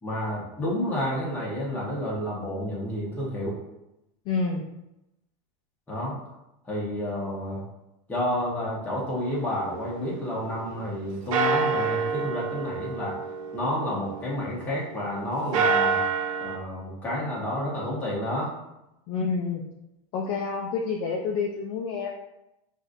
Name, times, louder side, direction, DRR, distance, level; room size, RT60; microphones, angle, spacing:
voice 1, 0.0-3.6 5.9-6.2 6.6-7.6 8.1-13.1 13.5-16.0 16.4-18.5, left 1 dB, 10° left, -6 dB, 1.0 m, -30 dB
voice 2, 4.3-4.6 19.1-19.6 20.1-22.1, left 4 dB, 30° left, -1 dB, 0.4 m, -28 dB
sound 1, 9.2-10.9 11.3-14.8 15.3-16.6, right 5 dB, 85° right, 0.6 m, -28 dB
6.0 x 2.6 x 2.5 m, 0.89 s
supercardioid pair, 175°, 17 cm